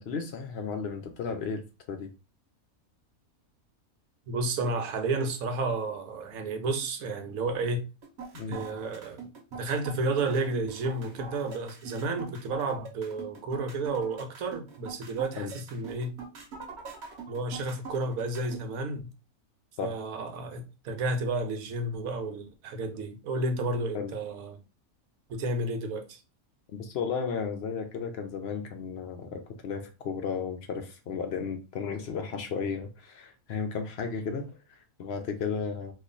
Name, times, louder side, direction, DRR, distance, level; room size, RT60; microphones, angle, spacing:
voice 1, 0.0-2.1 8.3-8.6 15.4-15.5 19.8-19.9 23.9-24.1 26.7-35.9, left 5 dB, 65° left, 0.7 m, -34 dB
voice 2, 4.3-7.8 8.5-9.3 9.6-16.2 17.3-19.1 19.8-24.6 25.3-26.2, right 2 dB, 75° right, 1.1 m, -31 dB
sound 1, 8.0-18.6, right 4 dB, 50° right, 1.2 m, -43 dB
3.0 x 2.3 x 3.8 m
omnidirectional pair, 1.5 m